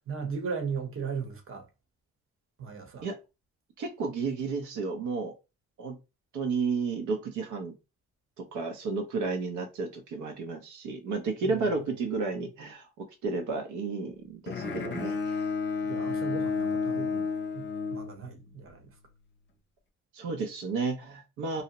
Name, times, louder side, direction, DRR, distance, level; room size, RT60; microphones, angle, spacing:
voice 1, 0.1-1.7 2.6-3.1 11.4-11.9 15.8-17.3 17.5-19.0, right 5 dB, 45° right, 0.8 m, -37 dB
voice 2, 3.8-5.3 5.8-5.9 6.3-7.7 8.4-12.9 13.2-15.5 20.1-21.6, right 4 dB, 80° right, 0.6 m, -32 dB
Bowed string instrument, 14.5-18.7, left 4 dB, 40° left, 0.6 m, -31 dB
2.6 x 2.0 x 2.8 m
cardioid pair, 90°, 30 cm